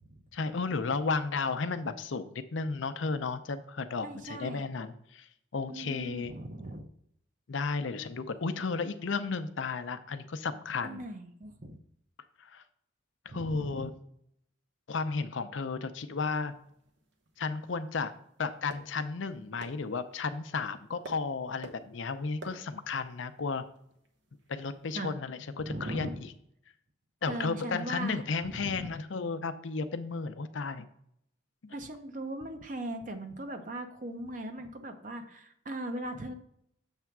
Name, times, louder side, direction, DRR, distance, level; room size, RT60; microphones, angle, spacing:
voice 1, 0.3-5.3 5.5-6.3 7.5-11.0 12.4-12.6 13.3-13.9 14.9-16.5 17.4-18.1 18.4-23.6 24.5-26.3 27.2-30.9 31.6-31.7, left 4 dB, 80° left, 11 dB, 0.6 m, -33 dB
voice 2, 4.0-4.6 5.7-6.9 10.8-11.8 13.3-13.9 24.9-25.1 25.6-26.2 27.3-29.0 31.7-36.3, right 1 dB, 40° right, 7 dB, 0.7 m, -39 dB
sound 1, 16.2-25.0, right 2 dB, 75° right, 0.9 m, -54 dB
7.3 x 3.4 x 6.0 m, 0.72 s
head